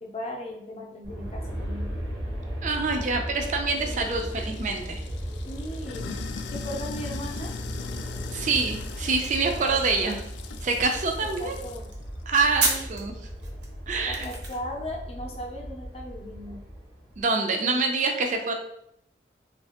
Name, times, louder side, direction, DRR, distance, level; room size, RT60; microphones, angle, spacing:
voice 1, 0.0-1.9 3.8-4.2 5.5-6.2 6.5-7.6 9.4-10.2 11.4-11.9 12.6-13.1 13.9-16.6, equal, 35° left, 1 dB, 0.5 m, -38 dB
Aircraft, 1.0-17.2, equal, 90° right, 1.4 m, -36 dB
voice 2, 2.6-5.0 8.3-10.2 10.6-11.6 12.3-13.1 13.9-14.3 17.2-18.5, right 3 dB, 45° right, 4 dB, 0.4 m, -26 dB
Sink (filling or washing), 3.8-11.9, left 6 dB, 85° left, 0.3 m, -40 dB
sound 1, 8.6-14.8, right 3 dB, 70° right, 0.7 m, -35 dB
3.2 x 2.8 x 2.8 m, 0.76 s
head